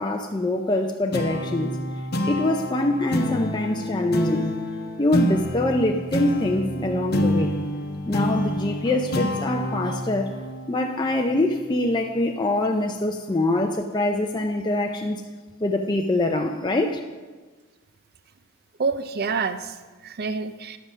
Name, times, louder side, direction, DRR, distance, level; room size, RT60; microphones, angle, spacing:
voice 1, 0.0-1.8 2.3-4.5 5.0-7.6 8.1-10.3 10.7-15.2 15.6-17.0, left 2 dB, 20° left, 3 dB, 0.5 m, -24 dB
sound 1, 1.1-12.0, equal, 45° left, 0.9 m, -28 dB
voice 2, 18.8-20.8, right 5 dB, 45° right, 10 dB, 0.5 m, -28 dB
10.5 x 7.6 x 6.2 m, 1.3 s
head